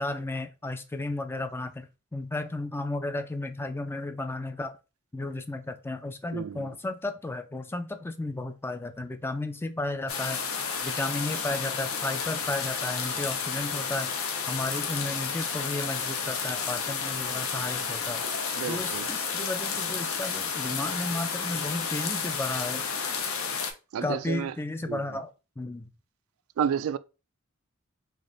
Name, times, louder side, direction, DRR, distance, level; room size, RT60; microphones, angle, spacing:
voice 1, 0.0-4.8 5.1-10.4 10.8-14.1 14.5-18.2 18.7-22.9 24.0-25.3 25.6-25.9, left 2 dB, 10° left, 0.3 m, -33 dB
voice 2, 6.3-6.7 18.6-19.1 23.9-24.5 24.9-25.0 26.6-27.0, right 8 dB, 75° right, 0.3 m, -30 dB
sound 1, 10.1-23.7, left 6 dB, 70° left, 0.7 m, -31 dB
3.4 x 2.5 x 3.8 m
head